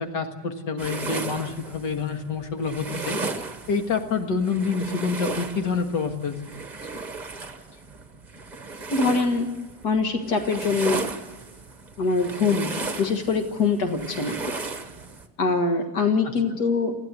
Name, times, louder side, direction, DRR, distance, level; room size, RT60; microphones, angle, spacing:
voice 1, 0.0-3.2 3.7-6.3, left 5 dB, 90° left, 4 dB, 2.3 m, -27 dB
sound 1, 0.8-15.3, right 3 dB, 25° right, 1.3 m, -35 dB
voice 2, 8.9-9.5 9.8-11.1 12.0-14.4 15.4-16.9, left 4 dB, 65° left, 5 dB, 2.2 m, -23 dB
20.5 x 15.0 x 8.3 m, 1.2 s
omnidirectional pair, 1.8 m